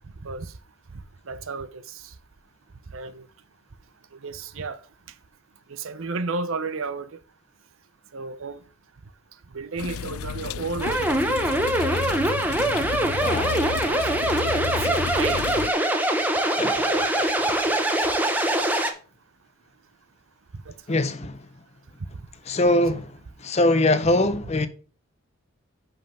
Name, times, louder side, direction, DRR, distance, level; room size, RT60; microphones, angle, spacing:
voice 1, 1.3-2.1 2.9-3.3 4.2-4.8 5.7-7.1 8.1-8.6 9.5-12.3 13.3-15.4 16.6-18.7 20.7-21.0 22.0-22.1 22.7-22.8 24.0-24.1, right 3 dB, 70° right, 0.7 m, -34 dB
sound 1, 9.8-15.7, left 7 dB, 85° left, 0.4 m, -32 dB
sound 2, 10.8-18.9, right 1 dB, 10° right, 0.7 m, -23 dB
voice 2, 13.2-13.6 16.6-16.8 20.9-21.4 22.5-23.1 23.4-24.7, left 1 dB, 30° left, 0.6 m, -22 dB
5.7 x 5.4 x 5.5 m
head